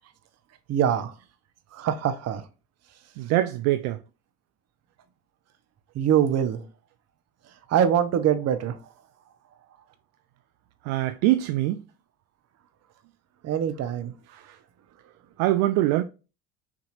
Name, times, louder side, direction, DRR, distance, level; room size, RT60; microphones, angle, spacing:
voice 1, 0.7-1.1 1.7-2.4 5.9-6.6 7.7-8.8 13.4-14.2, right 9 dB, 55° right, 0.9 m, -23 dB
voice 2, 3.2-4.0 10.8-11.8 14.3-14.6 15.4-16.0, right 15 dB, 70° right, 0.5 m, -23 dB
6.0 x 2.8 x 2.5 m
hypercardioid pair, 70°, 31 cm